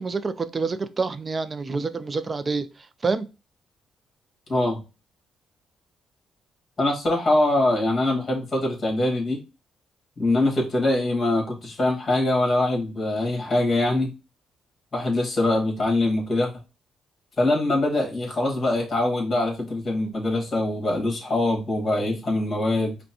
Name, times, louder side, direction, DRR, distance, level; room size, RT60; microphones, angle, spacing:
voice 1, 0.0-2.7 3.0-3.3, right 4 dB, 30° right, 0.4 m, -27 dB
voice 2, 4.5-4.8 6.8-9.4 10.2-14.1 14.9-16.5 17.4-23.0, left 2 dB, 35° left, 1.7 m, -23 dB
5.3 x 2.2 x 2.8 m
cardioid pair, 90°, 0 cm